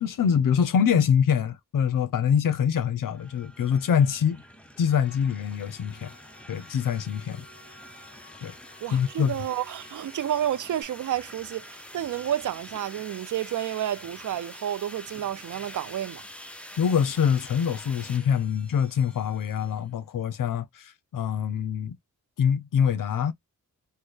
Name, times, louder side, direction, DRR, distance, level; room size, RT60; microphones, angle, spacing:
voice 1, 0.0-4.4 4.8-6.1 6.5-7.4 8.4-8.5 8.9-9.3 16.8-22.0 22.4-23.3, left 7 dB, 85° left, 0.6 m, -24 dB
sound 1, 3.0-19.8, equal, 5° left, 0.6 m, -46 dB
sound 2, 4.8-10.8, left 3 dB, 35° left, 1.2 m, -55 dB
voice 2, 8.8-16.2, right 11 dB, 70° right, 0.5 m, -30 dB
4.2 x 2.1 x 3.1 m
cardioid pair, 80°, 32 cm